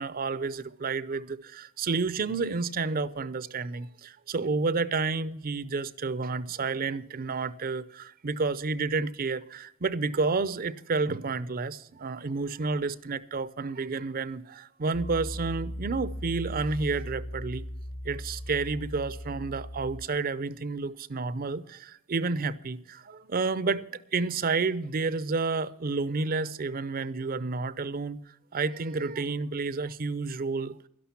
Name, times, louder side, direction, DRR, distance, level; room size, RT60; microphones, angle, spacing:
voice 1, 0.0-17.6 18.0-28.2 28.5-30.8, right 4 dB, 45° right, 0.6 m, -30 dB
Piano, 14.9-20.1, equal, 45° left, 0.9 m, -38 dB
12.5 x 11.5 x 5.8 m
head